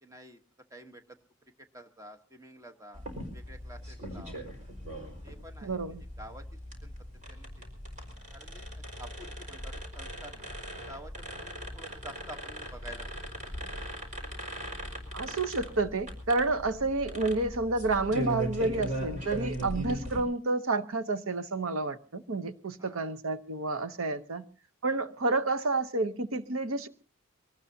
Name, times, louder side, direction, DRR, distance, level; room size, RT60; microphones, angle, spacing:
voice 1, 0.0-0.4 0.7-1.2 1.7-3.0 3.3-4.4 5.2-6.4 6.8-6.9 7.3-7.5 8.3-8.6 9.0-10.5 10.9-13.1 22.8-23.0, right 1 dB, 15° right, 7 dB, 1.1 m, -49 dB
sound 1, 2.9-20.2, equal, 35° right, 4.8 m, -39 dB
voice 2, 5.6-6.0 15.1-24.4 24.8-26.9, right 3 dB, 70° right, 12 dB, 0.9 m, -30 dB
24.0 x 18.5 x 2.8 m, 0.36 s
head